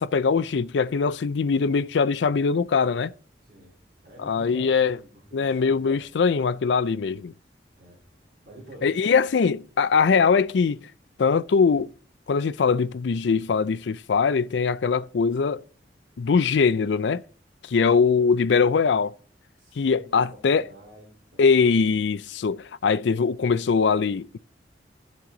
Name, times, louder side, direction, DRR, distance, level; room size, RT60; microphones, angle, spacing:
voice 1, 0.0-3.1 4.2-5.0 5.3-7.3 8.8-10.8 11.2-11.9 12.3-15.6 16.2-17.2 17.7-19.1 19.8-20.6 21.4-24.4, left 5 dB, 80° left, 0.4 m, -22 dB
voice 2, 3.4-3.7 4.0-6.2 7.7-8.0 8.4-9.2 19.6-21.7, right 1 dB, 50° right, 4.1 m, -48 dB
12.5 x 7.4 x 3.8 m
head